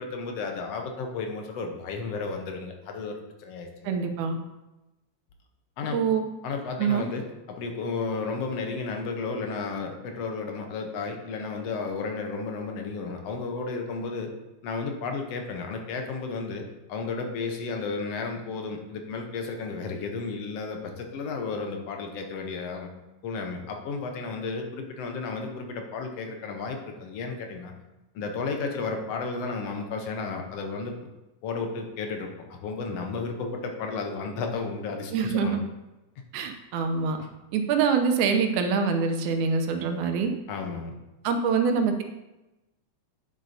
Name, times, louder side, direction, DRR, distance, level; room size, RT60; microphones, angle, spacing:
voice 1, 0.0-4.0 5.8-6.0 6.4-14.3 14.6-22.9 23.2-27.7 28.1-31.0 31.4-35.6 40.5-40.9, left 4 dB, 65° left, 3 dB, 1.8 m, -33 dB
voice 2, 3.8-4.4 5.9-6.2 6.8-7.1 35.1-35.6 36.3-37.2 37.5-40.3 41.2-42.0, right 5 dB, 90° right, 6 dB, 2.3 m, -25 dB
10.0 x 7.5 x 2.7 m, 1.0 s
omnidirectional pair, 3.3 m